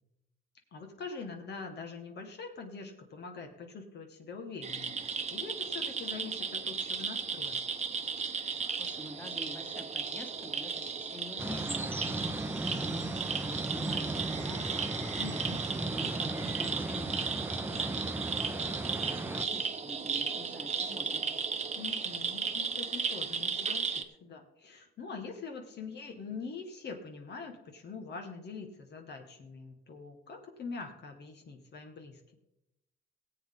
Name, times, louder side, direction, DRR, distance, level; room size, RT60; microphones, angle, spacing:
voice 1, 0.7-7.6 15.2-15.7 21.7-32.3, left 4 dB, 60° left, 4 dB, 1.8 m, -44 dB
sound 1, 4.6-24.0, right 5 dB, 35° right, 1.0 m, -35 dB
voice 2, 8.8-12.5 12.8-14.9 15.9-21.3, left 1 dB, 10° left, 3 dB, 1.9 m, -46 dB
sound 2, 11.4-19.4, right 2 dB, 10° right, 0.9 m, -36 dB
18.5 x 8.0 x 3.9 m, 0.85 s
cardioid pair, 90°, 20 cm